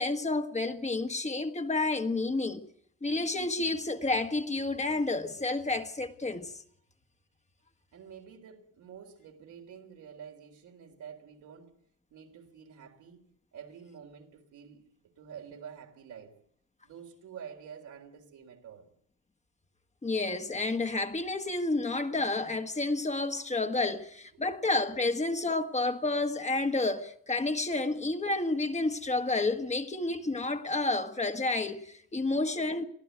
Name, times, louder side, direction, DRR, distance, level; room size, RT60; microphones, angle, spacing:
voice 1, 0.0-2.6 3.0-6.6 20.0-32.8, left 2 dB, 25° left, 1.6 m, -30 dB
voice 2, 7.9-11.7 12.1-13.2 13.5-14.8 15.2-16.4 16.8-18.9 24.3-24.6, right 7 dB, 80° right, 3.6 m, -48 dB
23.0 x 15.0 x 9.2 m
cardioid pair, 90°, 30 cm